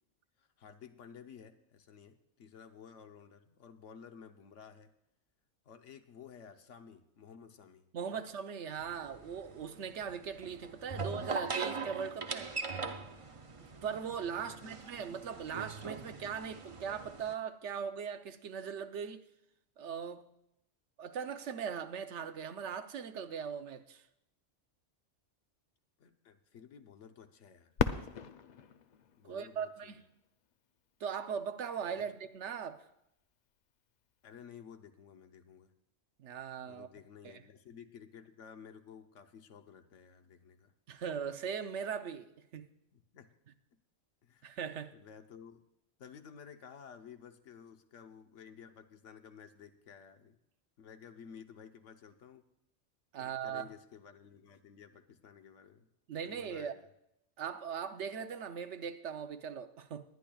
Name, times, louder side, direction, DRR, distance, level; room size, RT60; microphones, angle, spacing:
voice 1, 0.4-4.9 5.6-7.9 8.1-8.3 10.9-11.1 14.4-14.8 26.0-28.3 29.2-30.0 31.9-32.1 34.2-35.7 36.6-40.7 42.9-43.3 44.2-44.5 44.9-45.6 46.0-50.4 50.8-52.4 53.2-55.9 56.2-56.9, left 7 dB, 75° left, 1.2 m, -54 dB
voice 2, 7.9-12.5 13.8-19.2 19.8-20.3 21.0-24.0 29.2-30.0 31.0-32.9 36.2-36.9 37.2-37.4 40.9-42.6 44.4-44.9 53.1-53.7 56.1-56.7 57.4-60.0, right 7 dB, 70° right, 1.0 m, -39 dB
sound 1, 8.8-17.3, right 4 dB, 35° right, 0.6 m, -41 dB
Fireworks, 27.8-30.5 31.2-31.3 32.0-32.4 34.3-34.5, left 7 dB, 55° left, 0.5 m, -37 dB
21.0 x 10.5 x 2.3 m
omnidirectional pair, 1.3 m